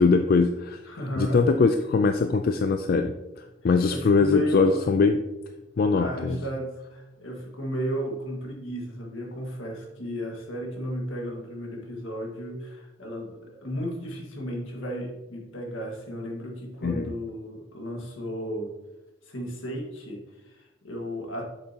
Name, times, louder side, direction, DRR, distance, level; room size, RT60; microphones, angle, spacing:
voice 1, 0.0-0.8 1.2-3.1 3.6-5.2 5.8-6.4 16.8-17.1, left 4 dB, 45° left, 7 dB, 0.3 m, -21 dB
voice 2, 0.8-1.4 2.6-2.7 3.6-4.8 6.0-18.7 19.2-21.4, equal, 75° left, 1 dB, 1.7 m, -34 dB
8.2 x 6.7 x 2.8 m, 1.0 s
head